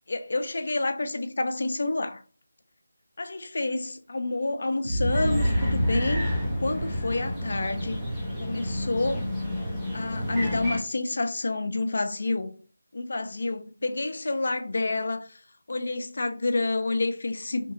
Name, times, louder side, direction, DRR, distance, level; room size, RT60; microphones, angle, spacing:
voice 1, 0.1-2.2 3.2-6.3 6.6-8.1 8.4-9.3 9.9-12.5 12.9-15.4 15.7-17.7, left 2 dB, 55° left, 0.5 m, -29 dB
Boom, 4.8-9.1, equal, 50° right, 1.0 m, -28 dB
sound 1, 5.1-10.8, left 1 dB, ahead, 0.5 m, -32 dB
2.9 x 2.6 x 2.5 m
figure-of-eight pair, 170°, 0 cm